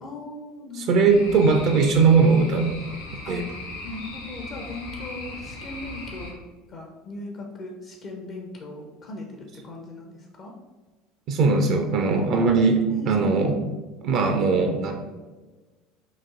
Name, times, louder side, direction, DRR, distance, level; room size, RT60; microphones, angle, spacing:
voice 1, 0.0-1.4 3.2-3.4 3.8-10.5 12.2-12.4 12.9-13.5, left 2 dB, 45° left, 1 dB, 0.6 m, -39 dB
voice 2, 0.7-2.8 3.3-3.4 11.3-13.6 14.0-14.9, right 4 dB, 50° right, 4 dB, 0.4 m, -20 dB
sound 1, 1.1-6.3, left 2 dB, 75° left, 0.8 m, -38 dB
4.1 x 2.5 x 3.5 m, 1.2 s
figure-of-eight pair, 65°, 0 cm